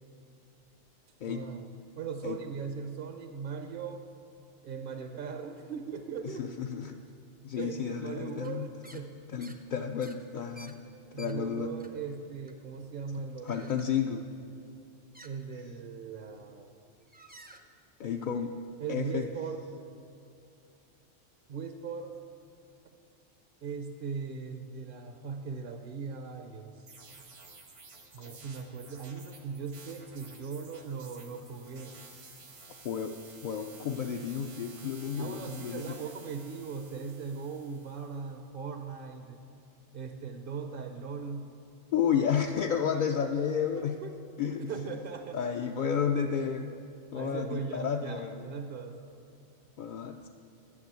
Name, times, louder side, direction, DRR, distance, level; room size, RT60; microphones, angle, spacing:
voice 1, 1.2-1.7 2.0-4.1 4.6-6.5 7.6-9.2 11.1-13.7 15.2-16.7 18.8-19.6 21.5-22.2 23.6-26.8 28.1-31.9 35.2-39.4 39.9-41.5 43.8-44.2 44.6-45.4 47.1-49.0, right 5 dB, 55° right, 6 dB, 0.7 m, -39 dB
voice 2, 6.2-7.0 7.4-8.7 9.3-10.8 11.2-11.8 13.2-14.2 18.0-18.6 18.9-19.3 28.2-28.4 32.8-36.0 41.9-44.0 44.4-44.7 45.3-46.7 47.1-48.5 49.8-50.3, left 7 dB, 60° left, 3 dB, 0.5 m, -32 dB
sound 1, 8.4-8.5 8.8-9.1 9.4-9.6 10.0-11.4 11.8-12.2 12.5-13.0 13.4-13.9 15.1-15.3 16.2-16.5 17.0-17.6, right 1 dB, 15° right, 0.3 m, -52 dB
sound 2, 26.9-38.3, right 4 dB, 85° right, 1.7 m, -52 dB
11.0 x 6.9 x 8.0 m, 2.7 s
omnidirectional pair, 1.2 m